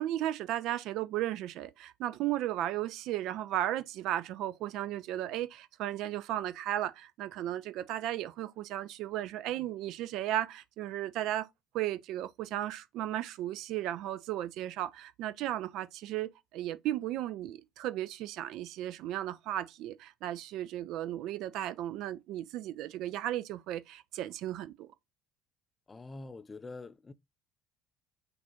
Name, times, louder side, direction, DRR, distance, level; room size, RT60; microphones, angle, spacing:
voice 1, 0.0-11.5 11.7-24.9, right 13 dB, 55° right, 0.4 m, -35 dB
voice 2, 25.9-27.1, left 3 dB, 20° left, 0.4 m, -45 dB
5.9 x 2.5 x 2.9 m
figure-of-eight pair, 60°, 0 cm